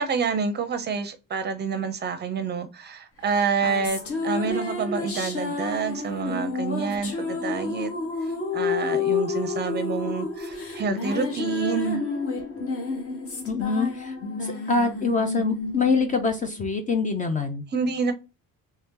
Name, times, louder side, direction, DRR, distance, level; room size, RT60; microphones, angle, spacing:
voice 1, 0.0-7.9 8.5-12.0 17.7-18.1, right 5 dB, 30° right, 0.5 m, -28 dB
sound 1, 3.3-17.0, left 4 dB, 45° left, 1.1 m, -30 dB
voice 2, 13.5-14.2 14.4-17.6, left 4 dB, 25° left, 0.4 m, -25 dB
3.3 x 2.8 x 3.6 m
cardioid pair, 170°, 33 cm